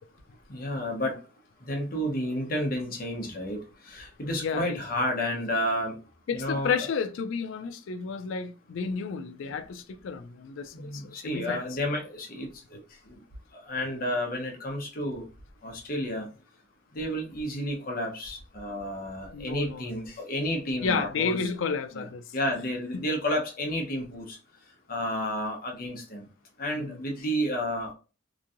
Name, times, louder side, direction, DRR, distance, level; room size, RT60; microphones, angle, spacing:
voice 1, 0.5-1.2 1.6-6.0 6.3-6.9 9.4-9.6 10.7-12.8 13.0-13.2 13.5-15.2 15.6-16.3 16.9-21.5 21.9-24.4 24.9-26.3 26.6-27.9, equal, 45° left, 0.8 m, -31 dB
voice 2, 4.4-4.8 6.3-11.6 19.3-19.9 20.8-22.2 22.9-23.0 26.7-27.0, left 5 dB, 80° left, 0.4 m, -31 dB
3.0 x 2.6 x 2.5 m
head